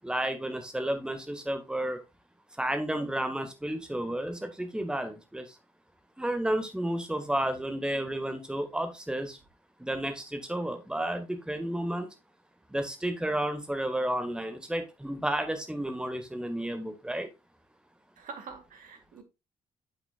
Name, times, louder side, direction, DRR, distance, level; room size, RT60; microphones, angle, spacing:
voice 1, 0.0-2.0 2.6-5.5 6.2-9.4 9.8-12.1 12.7-17.3, right 1 dB, 5° right, 1.7 m, -32 dB
voice 2, 18.2-19.2, right 5 dB, 50° right, 2.0 m, -45 dB
10.0 x 7.9 x 2.4 m
figure-of-eight pair, 45°, 18 cm